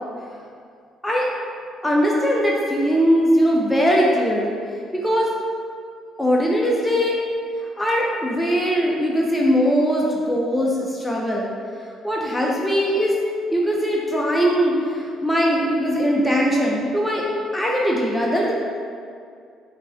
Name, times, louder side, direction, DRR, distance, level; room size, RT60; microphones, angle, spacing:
voice 1, 1.8-4.6 4.9-5.3 6.2-7.2 7.8-11.5 12.0-13.1 13.5-17.2 17.5-18.5, equal, 10° left, -3 dB, 0.6 m, -20 dB
5.3 x 3.3 x 2.7 m, 2.3 s
supercardioid pair, 70°, 0 cm